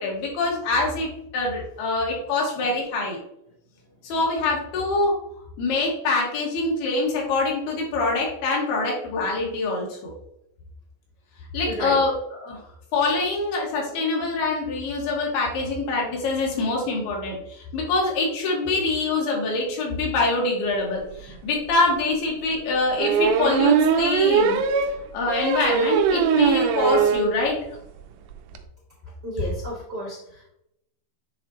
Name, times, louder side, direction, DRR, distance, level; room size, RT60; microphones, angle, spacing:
voice 1, 0.0-3.2 4.0-5.2 5.6-10.0 11.5-12.1 12.4-12.6 12.9-24.6 25.1-27.6, left 3 dB, 90° left, -2 dB, 3.5 m, -24 dB
voice 2, 11.6-12.0 29.2-30.5, right 1 dB, 65° right, -4 dB, 1.0 m, -32 dB
sound 1, 21.2-21.3 21.7-21.8 23.0-27.3 27.7-27.8 28.0-28.1 28.3-28.6, right 6 dB, 85° right, 1.9 m, -21 dB
9.2 x 3.6 x 2.9 m, 0.79 s
omnidirectional pair, 4.3 m